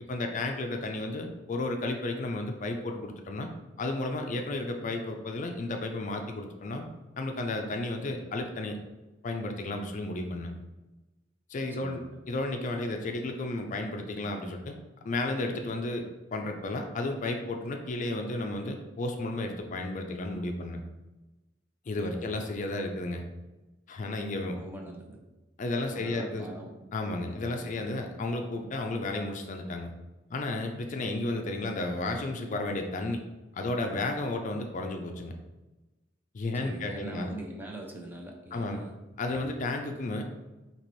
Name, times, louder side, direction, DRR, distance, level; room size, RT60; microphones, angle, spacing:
voice 1, 0.1-3.5 3.8-6.9 7.2-8.8 9.2-10.6 11.5-12.0 12.3-14.8 15.0-16.1 16.3-20.8 21.9-23.2 23.9-24.6 25.6-26.5 26.9-29.9 30.3-33.2 33.5-35.3 36.3-37.3 38.5-38.8 39.2-40.2, left 2 dB, 40° left, 4 dB, 0.4 m, -33 dB
voice 2, 11.8-12.2 21.9-22.3 24.6-25.2 25.9-26.7 27.2-27.8 36.6-39.0, right 1 dB, 10° right, 0 dB, 0.5 m, -43 dB
4.3 x 2.9 x 3.0 m, 1.1 s
head